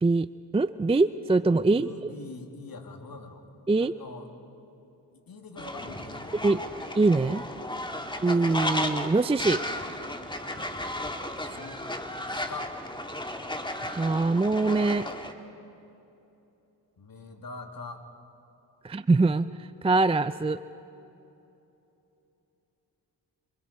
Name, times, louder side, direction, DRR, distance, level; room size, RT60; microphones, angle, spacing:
voice 1, 0.5-2.1 3.7-3.9 6.4-6.6 7.0-7.4 8.2-9.6 13.8-15.1 18.8-20.6, right 3 dB, 15° right, 13 dB, 0.5 m, -23 dB
voice 2, 1.7-3.4 3.8-4.3 5.1-6.7 11.4-11.9 12.3-12.7 17.0-18.0, left 3 dB, 55° left, 4 dB, 2.5 m, -43 dB
Fowl, 5.6-15.3, left 1 dB, 10° left, 1.8 m, -34 dB
27.5 x 24.5 x 4.3 m, 2.9 s
cardioid pair, 55°, 41 cm